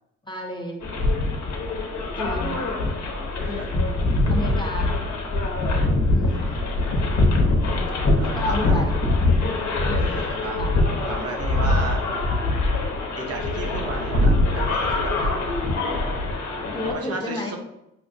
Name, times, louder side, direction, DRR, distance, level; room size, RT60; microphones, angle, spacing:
voice 1, 0.3-0.8 2.2-2.6 3.4-4.0 4.3-5.0 6.1-6.6 6.8-7.0 7.7-8.9 9.9-10.3 10.6-10.7 15.2-15.3 16.5-17.5, left 2 dB, 15° left, 0 dB, 0.8 m, -32 dB
sound 1, 0.8-16.9, left 2 dB, 65° left, 0.9 m, -23 dB
voice 2, 3.4-3.7 6.2-6.8 8.2-8.9 9.8-10.6 11.0-12.1 13.2-15.2 16.9-17.6, right 3 dB, 55° right, 2 dB, 0.8 m, -34 dB
5.9 x 2.0 x 2.6 m, 0.86 s
cardioid pair, 90°, 30 cm